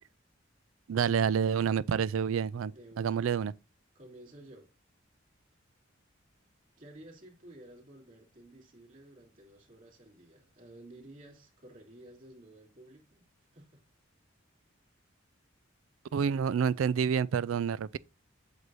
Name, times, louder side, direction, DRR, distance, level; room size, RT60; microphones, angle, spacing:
voice 1, 0.9-3.5 16.1-18.0, right 7 dB, 80° right, 0.4 m, -28 dB
voice 2, 2.6-3.2 3.9-4.7 6.8-13.2 13.5-13.8, right 1 dB, 40° right, 2.7 m, -53 dB
8.0 x 2.7 x 6.0 m
head